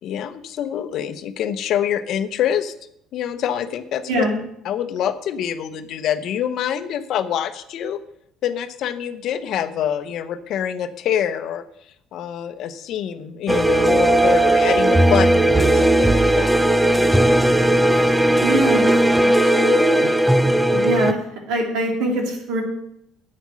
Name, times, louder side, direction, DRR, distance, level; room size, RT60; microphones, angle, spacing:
voice 1, 0.0-2.7 3.1-4.2 4.6-8.0 8.4-11.6 12.1-17.0 19.2-20.1 20.7-20.9, left 9 dB, 65° left, 10 dB, 0.9 m, -26 dB
voice 2, 4.1-4.4 18.4-18.9 20.8-21.2 21.5-22.6, right 1 dB, 75° right, 0 dB, 3.3 m, -22 dB
sound 1, 13.5-21.1, right 1 dB, 10° right, 0.7 m, -16 dB
9.2 x 8.7 x 6.3 m, 0.74 s
supercardioid pair, 90°, 0 cm